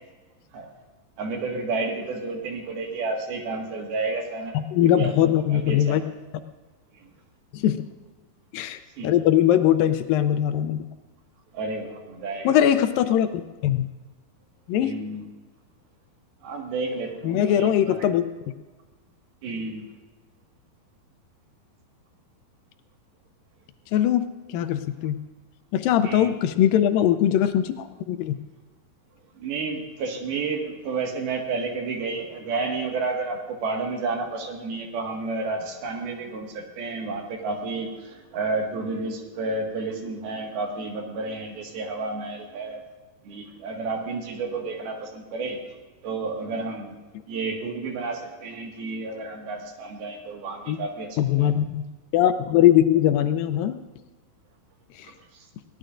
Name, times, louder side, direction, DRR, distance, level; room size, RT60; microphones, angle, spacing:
voice 1, 1.2-4.5 4.8-6.0 9.0-9.1 11.5-12.5 14.8-15.2 16.4-18.1 19.4-19.8 26.0-26.5 29.4-42.8 43.2-45.6 46.0-47.0 47.3-51.5 55.0-55.5, right 3 dB, 75° right, 1 dB, 3.7 m, -31 dB
voice 2, 4.7-6.0 7.5-7.8 8.5-10.8 12.5-13.3 13.6-13.9 14.7-14.9 17.2-18.2 23.9-24.2 24.5-25.2 25.7-28.3 50.7-50.8 51.2-51.8 52.1-53.7, left 11 dB, 80° left, 9 dB, 2.1 m, -21 dB
22.0 x 17.5 x 2.5 m, 1.3 s
omnidirectional pair, 4.4 m